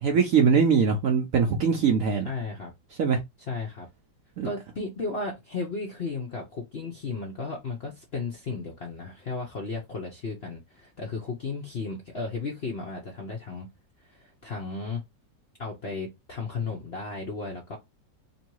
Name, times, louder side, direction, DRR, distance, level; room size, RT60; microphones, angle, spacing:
voice 1, 0.0-2.3 3.0-3.2 4.4-4.5, right 6 dB, 65° right, 0.9 m, -22 dB
voice 2, 2.2-2.7 3.4-3.9 4.4-13.7 14.0-15.0 15.6-17.8, left 4 dB, 55° left, 0.7 m, -34 dB
3.0 x 2.8 x 4.5 m
omnidirectional pair, 2.0 m